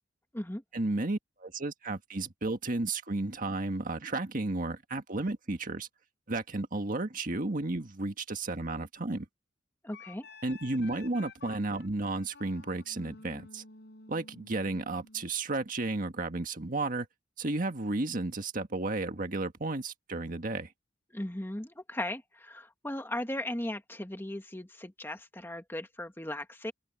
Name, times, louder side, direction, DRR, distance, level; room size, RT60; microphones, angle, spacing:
voice 1, 0.7-5.9 6.3-9.2 10.4-13.6 14.1-17.1 17.4-20.7, right 2 dB, 45° right, 1.7 m, -33 dB
voice 2, 9.8-10.3 21.1-26.7, left 1 dB, 10° left, 1.6 m, -37 dB
Wind instrument woodwind instrument, 9.9-15.3, left 3 dB, 60° left, 5.1 m, -52 dB
head